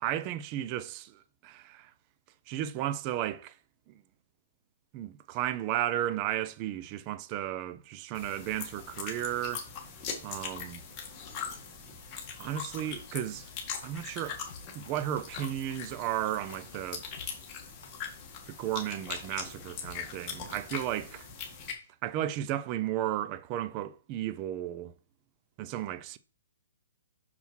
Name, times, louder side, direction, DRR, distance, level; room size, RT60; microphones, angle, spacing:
voice 1, 0.0-1.9 2.5-3.6 3.9-4.0 4.9-9.7 10.2-10.8 12.4-13.5 13.8-14.4 14.7-17.1 18.5-21.3 22.0-24.9 25.6-26.2, right 12 dB, 30° right, 0.6 m, -34 dB
sound 1, 8.1-21.7, left 6 dB, 25° left, 1.9 m, -41 dB
sound 2, 13.8-13.9 14.5-14.6 15.2-15.3 15.8-15.9 16.5-16.6 17.2-17.3 17.8-17.9 18.5-18.6 19.2-19.3 19.8-19.9 20.5-20.6 21.2-21.3, left 6 dB, 50° left, 1.9 m, -50 dB
5.9 x 5.6 x 4.5 m
hypercardioid pair, 140°, 0 cm